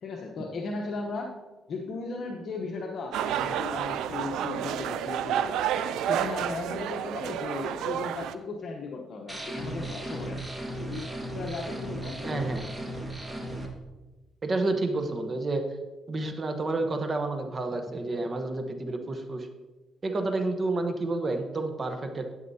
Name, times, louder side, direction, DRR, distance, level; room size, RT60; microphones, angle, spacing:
voice 1, 0.0-1.3 1.7-5.7 6.0-10.4 10.8-12.6, left 3 dB, 60° left, 1 dB, 0.9 m, -36 dB
sound 1, 3.1-8.3, right 9 dB, 85° right, 0.4 m, -30 dB
sound 2, 9.3-13.7, right 1 dB, 15° right, 1.7 m, -36 dB
voice 2, 12.2-12.6 14.4-15.6 16.1-19.5 20.0-22.3, right 2 dB, 35° right, 6 dB, 1.0 m, -30 dB
11.0 x 8.7 x 2.8 m, 1.2 s
cardioid pair, 90°, 0 cm